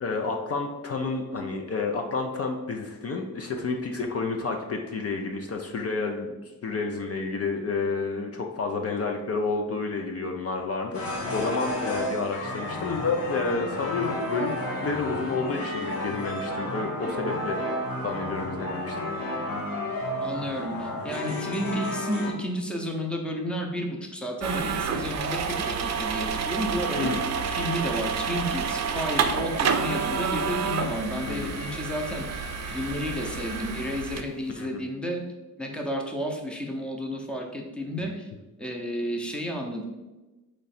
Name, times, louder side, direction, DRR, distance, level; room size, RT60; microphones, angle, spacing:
voice 1, 0.0-19.1 27.0-27.2 31.3-31.6 34.6-34.8, left 4 dB, 45° left, 3 dB, 0.5 m, -30 dB
sound 1, 10.9-22.3, left 1 dB, 85° left, 1.1 m, -32 dB
voice 2, 20.2-35.2 35.6-38.3 38.6-39.9, equal, 5° left, 1 dB, 0.6 m, -32 dB
sound 2, 24.4-34.2, right 6 dB, 50° right, 0.5 m, -29 dB
3.7 x 3.2 x 4.2 m, 1.1 s
cardioid pair, 100°, 34 cm